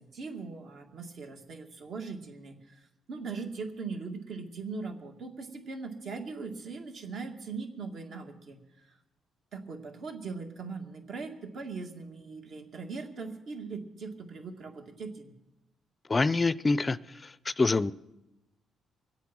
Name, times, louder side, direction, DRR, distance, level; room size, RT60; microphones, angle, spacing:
voice 1, 0.0-9.0 9.5-15.3, right 4 dB, 65° right, 3 dB, 2.3 m, -40 dB
voice 2, 16.1-17.0 17.2-17.9, left 3 dB, 25° left, 17 dB, 0.4 m, -26 dB
23.0 x 8.3 x 6.2 m, 0.95 s
cardioid pair, 90°, 0 cm